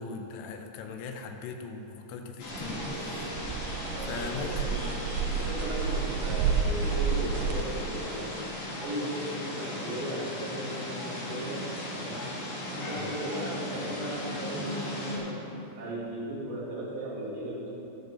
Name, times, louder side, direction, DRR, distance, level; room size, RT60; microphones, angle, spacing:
voice 1, 0.0-3.3 4.1-4.9 13.0-13.2, left 4 dB, 85° left, 5 dB, 2.9 m, -40 dB
sound 1, 2.4-15.2, left 1 dB, 50° left, 3.3 m, -37 dB
Wind instrument woodwind instrument, 2.5-10.5, left 2 dB, 10° left, 1.7 m, -49 dB
sound 2, 2.5-7.6, right 6 dB, 85° right, 2.2 m, -31 dB
voice 2, 3.9-5.0 5.3-8.3 8.8-12.3 12.7-15.4 15.8-17.7, right 1 dB, 60° right, -7 dB, 4.2 m, -37 dB
16.5 x 7.0 x 4.3 m, 3.0 s
omnidirectional pair, 5.2 m